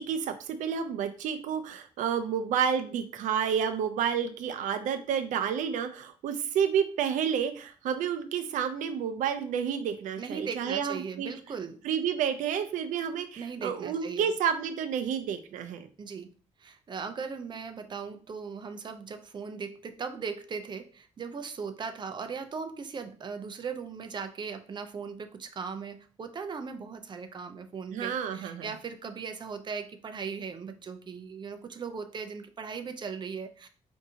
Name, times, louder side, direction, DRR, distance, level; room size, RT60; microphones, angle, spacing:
voice 1, 0.0-11.3 11.8-15.9 27.9-28.7, right 8 dB, 90° right, 9 dB, 0.4 m, -30 dB
voice 2, 10.2-11.8 13.4-14.3 16.0-16.3 16.6-33.7, right 5 dB, 35° right, 7 dB, 0.5 m, -38 dB
4.7 x 2.6 x 2.7 m, 0.40 s
cardioid pair, 90°, 13 cm